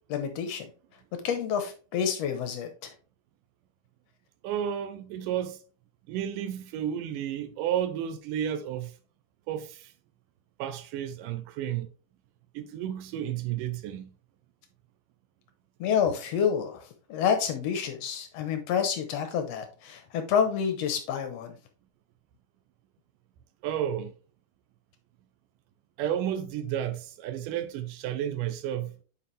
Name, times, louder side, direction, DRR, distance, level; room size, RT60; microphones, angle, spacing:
voice 1, 0.1-0.7 1.2-2.9 15.8-21.6, left 7 dB, 75° left, 1.5 m, -28 dB
voice 2, 4.4-5.6 6.1-9.0 9.5-9.9 10.6-11.9 12.5-14.1 23.6-24.1 26.0-28.9, right 10 dB, 80° right, 2.0 m, -32 dB
8.7 x 4.8 x 3.2 m
omnidirectional pair, 4.1 m